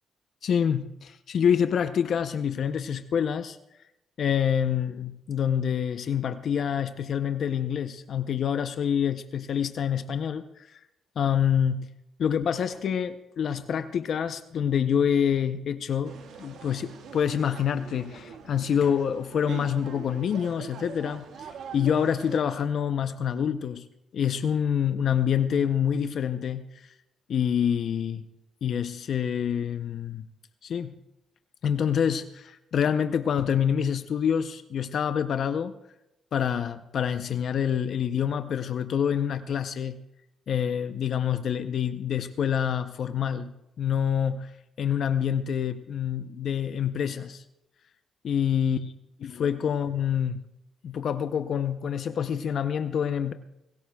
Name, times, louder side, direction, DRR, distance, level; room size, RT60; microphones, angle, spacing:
voice 1, 0.4-3.6 4.2-10.8 11.2-11.9 12.2-23.8 24.1-26.9 27.3-28.2 28.6-30.2 30.6-30.9 31.6-35.7 36.3-40.0 40.5-43.5 43.8-44.5 44.8-47.4 48.2-48.8 49.4-50.4 50.8-53.3, left 8 dB, 60° left, 10 dB, 0.6 m, -27 dB
sound 1, 16.0-22.4, right 6 dB, 80° right, 1.5 m, -43 dB
23.0 x 18.5 x 2.3 m, 0.89 s
cardioid pair, 90°, 0 cm